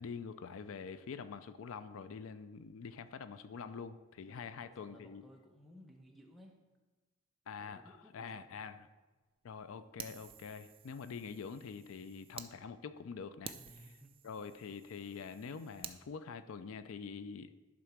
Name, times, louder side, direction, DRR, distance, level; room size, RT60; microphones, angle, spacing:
voice 1, 0.0-5.2 7.5-8.9 9.4-13.5 14.2-17.5, left 5 dB, 80° left, 12 dB, 0.4 m, -45 dB
voice 2, 4.3-6.6 7.6-8.7 13.5-14.1, equal, ahead, 0 dB, 1.0 m, -59 dB
Fire, 10.0-12.5 13.0-13.1 13.4-16.0, right 8 dB, 25° right, 0.4 m, -51 dB
11.0 x 3.7 x 5.9 m, 1.2 s
head